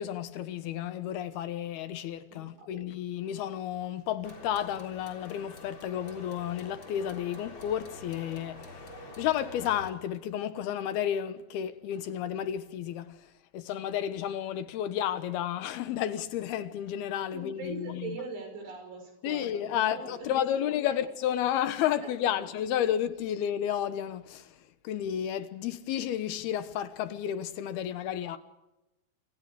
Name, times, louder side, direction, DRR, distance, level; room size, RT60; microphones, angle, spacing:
voice 1, 0.0-18.2 19.2-24.6 24.8-28.4, left 10 dB, 75° left, 3.0 m, -32 dB
voice 2, 2.3-2.8 17.3-20.7, right 4 dB, 85° right, 8.0 m, -42 dB
sound 1, 4.2-9.9, left 2 dB, 30° left, 4.3 m, -47 dB
28.5 x 25.0 x 5.0 m
omnidirectional pair, 4.7 m